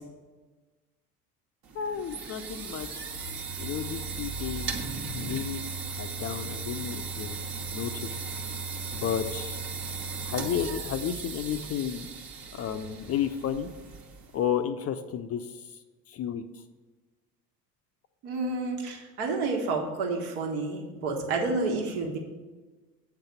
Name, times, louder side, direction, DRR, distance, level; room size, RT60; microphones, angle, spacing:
sound 1, 1.6-14.4, right 4 dB, 50° right, 1.2 m, -36 dB
voice 1, 1.7-3.0 3.6-4.8 5.1-5.6 6.0-7.4 7.7-8.2 8.9-9.6 10.2-12.1 12.5-13.7 14.3-15.6 16.1-16.4, left 9 dB, 35° left, 9 dB, 0.5 m, -32 dB
voice 2, 18.2-22.2, right 3 dB, 70° right, 0 dB, 1.5 m, -30 dB
8.3 x 4.0 x 6.8 m, 1.3 s
hypercardioid pair, 65°, 46 cm